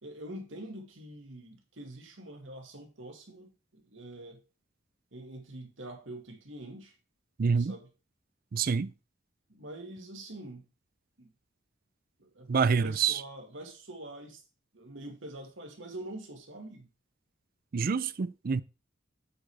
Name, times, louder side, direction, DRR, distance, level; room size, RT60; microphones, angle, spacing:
voice 1, 0.0-4.4 5.1-6.9 7.6-7.9 9.5-10.7 11.2-11.3 12.2-14.4 14.7-16.9, right 1 dB, 70° right, 2.1 m, -45 dB
voice 2, 7.4-7.7 8.5-8.9 12.5-13.2 17.7-18.6, right 5 dB, 45° right, 0.4 m, -27 dB
8.8 x 5.0 x 4.7 m
head